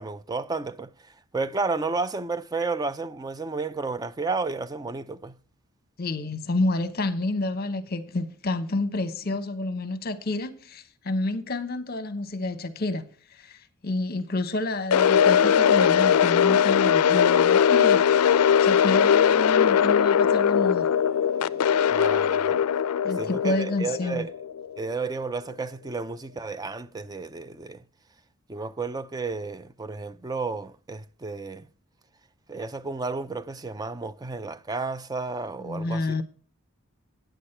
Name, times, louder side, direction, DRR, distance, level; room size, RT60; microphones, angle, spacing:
voice 1, 0.0-5.4 21.9-22.6 23.2-24.3 24.8-27.8 28.5-31.7 32.5-36.2, right 3 dB, 15° right, 0.4 m, -32 dB
voice 2, 6.0-13.0 13.3-20.9 21.4-21.5 23.0-24.2 35.6-36.2, left 2 dB, 45° left, 0.9 m, -29 dB
sound 1, 14.9-25.0, left 8 dB, 80° left, 0.4 m, -20 dB
sound 2, 18.4-23.0, left 1 dB, 75° right, 4.7 m, -52 dB
9.2 x 8.3 x 4.4 m
head